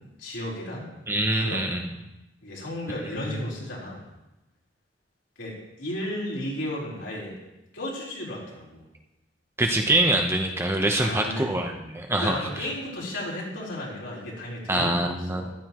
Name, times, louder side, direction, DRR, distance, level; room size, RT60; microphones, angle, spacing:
voice 1, 0.0-0.9 1.4-1.6 2.4-4.1 5.4-7.4 7.7-8.9 11.0-11.6 12.2-15.5, left 1 dB, 70° left, -4 dB, 4.1 m, -34 dB
voice 2, 1.1-1.9 9.6-12.7 14.7-15.5, right 1 dB, 15° right, 3 dB, 0.8 m, -25 dB
14.5 x 12.0 x 3.0 m, 0.98 s
head